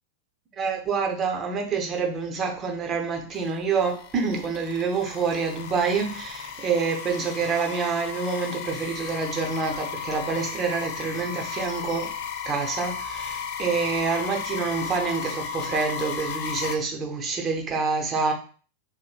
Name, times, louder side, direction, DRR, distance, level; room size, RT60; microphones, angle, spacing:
voice 1, 0.6-12.1 12.5-18.3, right 5 dB, 25° right, 0.6 m, -27 dB
sound 1, 3.3-16.7, left 7 dB, 50° left, 0.4 m, -35 dB
3.0 x 2.7 x 2.3 m
figure-of-eight pair, 90°, 0 cm